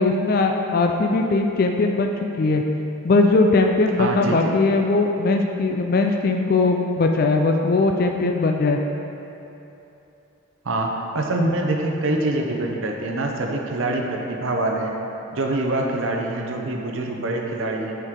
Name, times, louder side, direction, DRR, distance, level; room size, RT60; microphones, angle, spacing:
voice 1, 0.0-2.6 3.0-8.8, left 3 dB, 45° left, 3 dB, 0.4 m, -20 dB
voice 2, 4.0-4.5 10.6-14.9 15.3-17.9, right 2 dB, 65° right, 1 dB, 0.7 m, -25 dB
7.9 x 4.6 x 3.7 m, 2.9 s
head